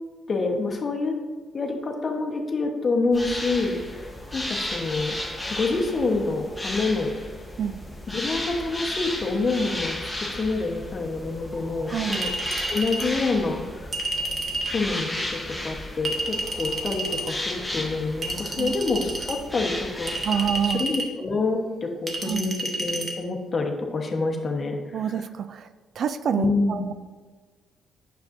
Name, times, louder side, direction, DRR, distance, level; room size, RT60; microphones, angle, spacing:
voice 1, 0.3-1.1 1.5-5.1 5.5-7.1 8.1-12.3 12.7-13.9 14.6-25.2 26.4-26.8, left 3 dB, 40° left, 2 dB, 1.1 m, -27 dB
sound 1, 3.1-20.7, left 1 dB, 5° left, 1.1 m, -34 dB
voice 2, 11.9-12.2 18.6-18.8 20.2-20.9 22.3-22.6 24.9-25.7 26.0-26.9, right 8 dB, 60° right, 11 dB, 0.3 m, -27 dB
Chink clink, 12.1-13.1 13.9-14.8 16.0-17.3 18.2-19.4 20.1-21.1 22.1-23.1, right 2 dB, 35° right, 1.2 m, -30 dB
9.0 x 6.8 x 2.6 m, 1.4 s
cardioid pair, 90°, 0 cm